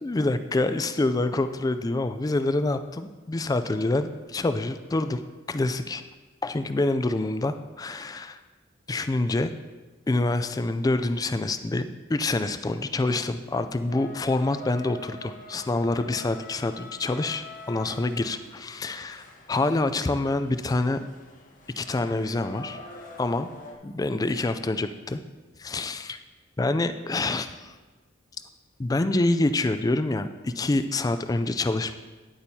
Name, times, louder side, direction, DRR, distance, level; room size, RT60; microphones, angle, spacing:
voice 1, 0.0-5.2 5.5-6.0 6.4-8.4 8.9-9.5 10.1-21.0 21.8-22.8 23.2-23.5 23.8-25.2 25.6-26.2 26.6-27.7 28.8-31.9, left 2 dB, 20° left, 10 dB, 0.3 m, -26 dB
sound 1, 13.9-23.7, left 2 dB, 40° left, 1.0 m, -45 dB
10.5 x 8.6 x 2.8 m, 1.3 s
head